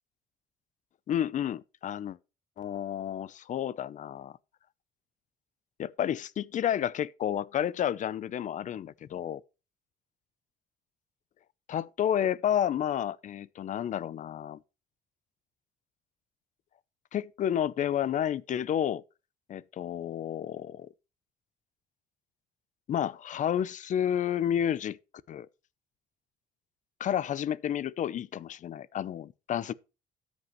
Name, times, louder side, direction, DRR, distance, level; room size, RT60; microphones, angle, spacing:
voice 1, 1.1-2.2 2.6-4.3 5.8-9.4 11.7-14.6 17.1-19.0 19.5-20.9 22.9-25.0 25.3-25.5 27.0-29.7, left 10 dB, 50° left, 0.6 m, -30 dB
13.0 x 8.2 x 3.1 m
cardioid pair, 110°, 17 cm